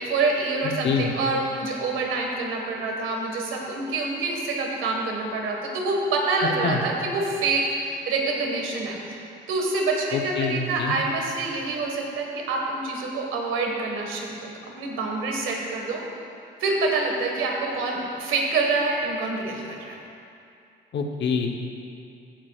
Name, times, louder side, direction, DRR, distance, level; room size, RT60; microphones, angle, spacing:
voice 1, 0.0-16.0 16.6-20.0, right 3 dB, 90° right, 0 dB, 1.6 m, -26 dB
voice 2, 10.1-11.0 20.9-21.6, left 6 dB, 65° left, 3 dB, 1.0 m, -25 dB
15.5 x 8.7 x 2.4 m, 2.6 s
cardioid pair, 90°, 20 cm